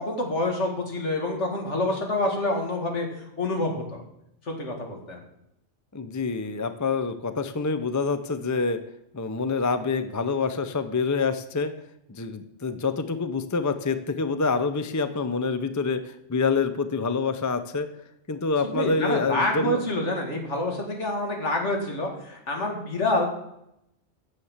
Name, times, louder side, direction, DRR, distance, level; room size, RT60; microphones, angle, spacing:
voice 1, 0.0-4.0 4.5-5.2 18.6-23.3, left 2 dB, 75° left, 2 dB, 2.5 m, -27 dB
voice 2, 5.9-8.8 9.1-11.7 12.1-17.9 18.3-19.8, left 4 dB, 20° left, 11 dB, 0.5 m, -26 dB
9.6 x 7.4 x 7.2 m, 0.80 s
omnidirectional pair, 1.2 m